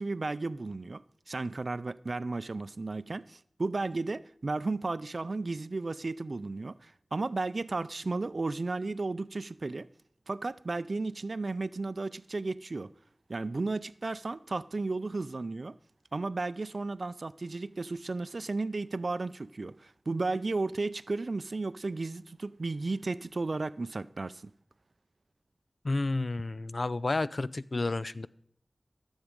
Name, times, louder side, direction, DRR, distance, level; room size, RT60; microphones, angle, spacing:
voice 1, 0.0-9.9 10.3-12.9 13.3-15.8 16.1-24.5, right 3 dB, 65° right, 0.3 m, -34 dB
voice 2, 25.8-28.3, left 2 dB, 60° left, 0.3 m, -31 dB
13.0 x 7.3 x 5.1 m
wide cardioid pair, 60°, 0 cm